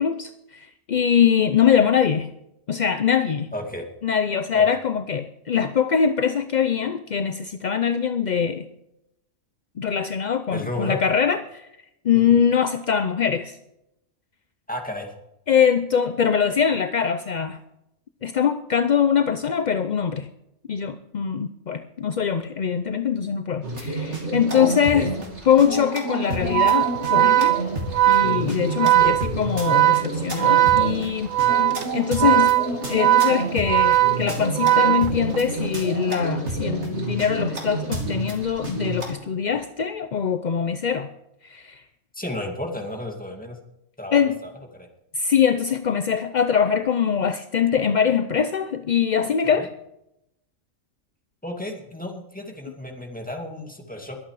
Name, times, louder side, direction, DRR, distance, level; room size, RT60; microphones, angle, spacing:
voice 1, 0.0-2.3 2.7-3.5 4.0-8.7 9.8-11.7 12.0-13.6 15.5-17.6 18.2-20.3 20.7-25.1 25.4-27.6 28.1-31.3 31.9-32.5 32.9-41.1 41.4-41.8 44.1-44.3 45.1-49.7, left 7 dB, 50° left, 10 dB, 0.5 m, -22 dB
voice 2, 3.5-3.9 4.5-4.7 10.5-11.0 12.1-12.2 14.7-15.1 24.5-25.1 29.0-29.2 42.1-43.6 44.0-44.9 49.6-49.7 51.4-54.2, left 1 dB, 5° left, 2 dB, 2.2 m, -33 dB
sound 1, 23.6-39.1, right 1 dB, 55° right, 3.1 m, -29 dB
Organ, 26.4-35.6, right 14 dB, 70° right, 1.2 m, -19 dB
22.0 x 8.6 x 4.8 m, 0.85 s
omnidirectional pair, 1.4 m